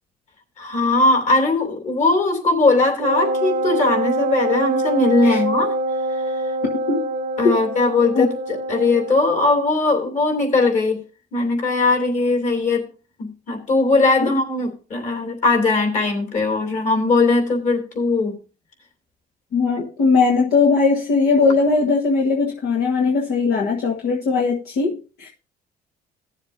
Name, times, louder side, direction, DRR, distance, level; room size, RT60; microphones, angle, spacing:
voice 1, 0.6-5.8 6.1-6.5 7.4-11.0 11.3-12.8 13.2-18.3, left 3 dB, 45° left, 3 dB, 2.9 m, -19 dB
Wind instrument woodwind instrument, 3.0-9.6, right 1 dB, 45° right, 0.8 m, -25 dB
voice 2, 19.5-25.3, left 4 dB, 70° left, -1 dB, 1.5 m, -19 dB
17.5 x 7.2 x 2.7 m, 0.35 s
cardioid pair, 110°, 17 cm